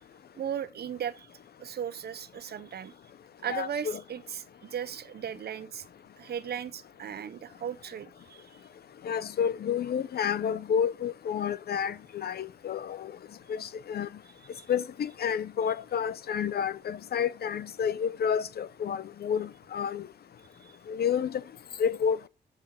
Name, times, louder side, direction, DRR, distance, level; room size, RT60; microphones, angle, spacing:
voice 1, 0.4-1.3 1.6-2.9 3.4-5.8 6.2-8.4 14.5-14.7 20.6-20.7, right 9 dB, 70° right, 1.1 m, -37 dB
voice 2, 3.5-4.0 9.0-13.1 13.5-14.1 14.7-20.0 20.9-21.4 21.8-22.3, left 7 dB, 70° left, 0.8 m, -30 dB
14.0 x 6.5 x 5.7 m
cardioid pair, 90°, 17 cm